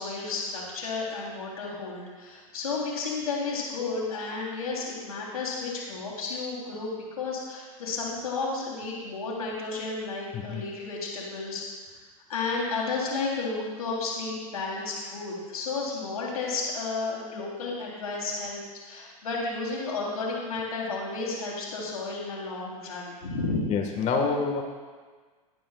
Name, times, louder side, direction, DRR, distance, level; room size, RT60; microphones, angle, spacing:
voice 1, 0.0-6.9 7.2-11.6 12.3-23.7, left 3 dB, 90° left, -4 dB, 3.7 m, -32 dB
voice 2, 23.7-24.6, left 4 dB, 40° left, 2 dB, 1.8 m, -27 dB
16.5 x 10.0 x 2.5 m, 1.5 s
hypercardioid pair, 100°, 18 cm